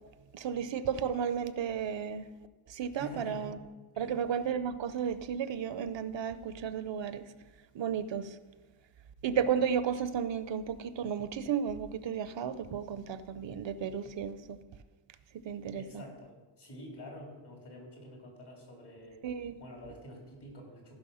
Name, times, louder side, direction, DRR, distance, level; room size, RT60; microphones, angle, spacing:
voice 1, 0.3-2.2 2.7-3.6 4.0-7.2 7.7-8.3 9.2-14.6 15.5-16.0 19.2-19.5, right 7 dB, 65° right, 14 dB, 0.6 m, -33 dB
voice 2, 2.9-3.5 3.9-4.2 15.7-19.2 19.6-21.0, equal, 55° left, 0 dB, 3.6 m, -48 dB
15.0 x 5.9 x 5.6 m, 1.3 s
wide cardioid pair, 115°, 48 cm